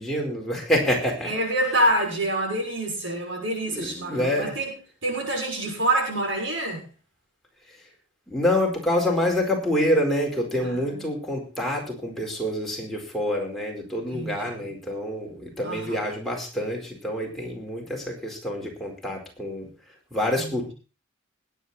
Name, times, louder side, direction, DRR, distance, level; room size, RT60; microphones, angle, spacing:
voice 1, 0.0-1.3 3.7-4.6 8.3-19.7 20.1-20.7, left 1 dB, ahead, -2 dB, 4.5 m, -27 dB
voice 2, 1.2-4.7 5.0-6.8 10.6-11.2 14.1-14.7 15.6-16.0 20.4-20.6, right 1 dB, 70° right, 1 dB, 6.3 m, -27 dB
20.5 x 9.0 x 4.3 m, 0.34 s
head